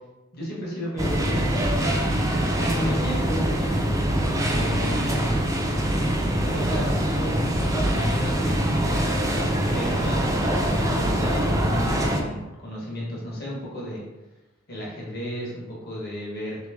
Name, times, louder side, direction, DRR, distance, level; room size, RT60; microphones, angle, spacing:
voice 1, 0.3-2.3 2.6-3.4 4.5-5.4 6.5-7.1 7.6-9.3 9.6-14.0 14.7-16.6, equal, 50° left, -4 dB, 1.2 m, -33 dB
sound 1, 1.0-12.2, right 1 dB, 15° right, 0.4 m, -24 dB
3.4 x 3.0 x 3.4 m, 1.1 s
head